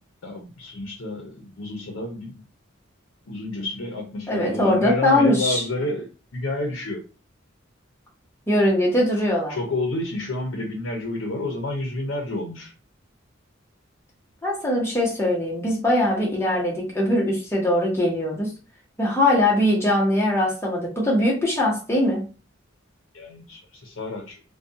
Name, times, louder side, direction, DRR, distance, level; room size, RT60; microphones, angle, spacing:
voice 1, 0.2-2.4 3.3-6.1 6.3-7.0 9.5-12.7 23.1-24.4, left 2 dB, 80° left, 0.7 m, -29 dB
voice 2, 4.3-5.6 8.5-9.6 14.4-18.5 19.0-22.3, left 1 dB, 15° left, 0.9 m, -21 dB
2.4 x 2.2 x 2.7 m
head